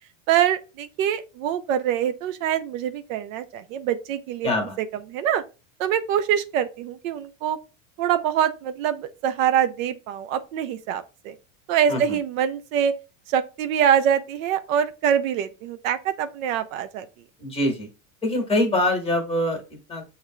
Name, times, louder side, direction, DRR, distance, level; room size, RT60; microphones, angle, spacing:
voice 1, 0.3-4.5 5.1-5.4 5.8-7.6 8.0-11.4 11.7-12.9 13.3-17.1, right 9 dB, 75° right, 0.6 m, -24 dB
voice 2, 4.4-4.8 11.9-12.2 17.4-17.9 18.2-20.0, left 1 dB, 15° left, 1.4 m, -24 dB
6.5 x 2.9 x 2.3 m
supercardioid pair, 130°, 40 cm